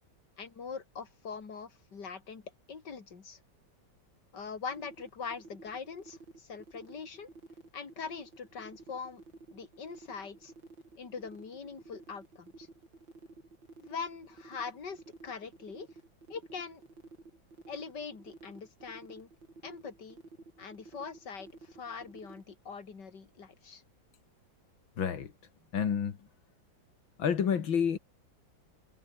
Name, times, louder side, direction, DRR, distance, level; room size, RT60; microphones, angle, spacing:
voice 1, 0.4-2.4 2.7-3.4 4.3-7.3 7.7-9.2 9.5-10.5 11.0-12.7 13.8-15.9 16.3-16.8 17.7-19.3 19.6-20.2 20.6-23.8, left 5 dB, 60° left, 3.4 m, -42 dB
sound 1, 4.7-22.4, right 3 dB, 75° right, 6.2 m, -52 dB
voice 2, 25.0-25.3 25.7-26.2 27.2-28.0, left 7 dB, 85° left, 2.7 m, -29 dB
omnidirectional pair, 2.1 m